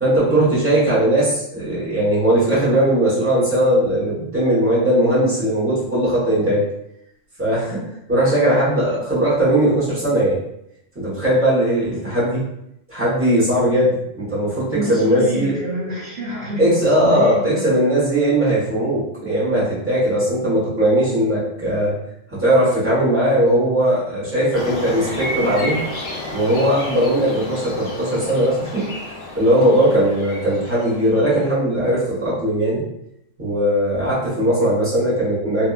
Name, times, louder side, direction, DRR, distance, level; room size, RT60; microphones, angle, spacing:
voice 1, 0.0-6.6 7.4-10.4 10.9-12.4 12.9-15.5 16.6-22.0 22.3-25.8 26.3-28.9 29.3-32.8 33.4-35.7, right 1 dB, 10° right, -10 dB, 1.1 m, -19 dB
voice 2, 14.7-17.6, equal, 50° right, -9 dB, 0.9 m, -28 dB
sound 1, 24.5-31.5, left 1 dB, 55° left, 0.8 m, -31 dB
2.7 x 2.6 x 2.4 m, 0.79 s
omnidirectional pair, 1.4 m